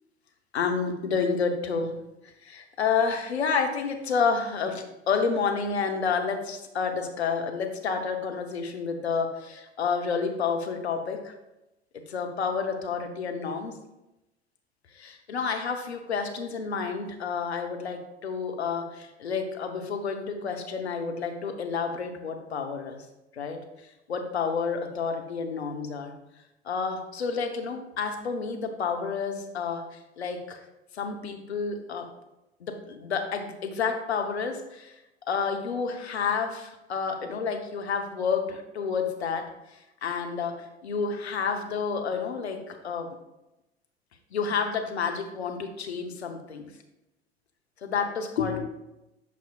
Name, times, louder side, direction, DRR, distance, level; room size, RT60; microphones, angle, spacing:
voice 1, 0.5-2.0 2.2-11.3 11.9-13.8 14.9-23.1 23.3-23.6 24.1-26.1 26.6-30.6 30.9-32.1 32.6-34.9 35.3-43.1 44.3-46.7 47.8-48.7, left 5 dB, 75° left, 5 dB, 0.8 m, -30 dB
8.4 x 5.8 x 2.2 m, 0.94 s
figure-of-eight pair, 80°, 33 cm